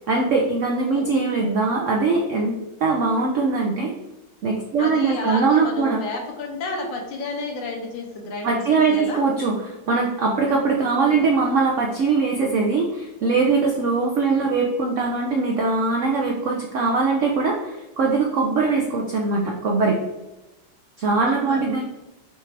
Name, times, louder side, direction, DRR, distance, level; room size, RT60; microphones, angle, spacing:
voice 1, 0.1-2.5 2.8-3.9 4.4-6.0 8.4-9.6 9.9-20.0 21.0-21.8, right 4 dB, 90° right, 0 dB, 0.6 m, -21 dB
voice 2, 4.8-9.2 11.0-11.3 14.3-14.5 21.3-21.7, left 3 dB, 90° left, 1 dB, 1.7 m, -32 dB
6.3 x 2.5 x 3.3 m, 1.0 s
omnidirectional pair, 2.0 m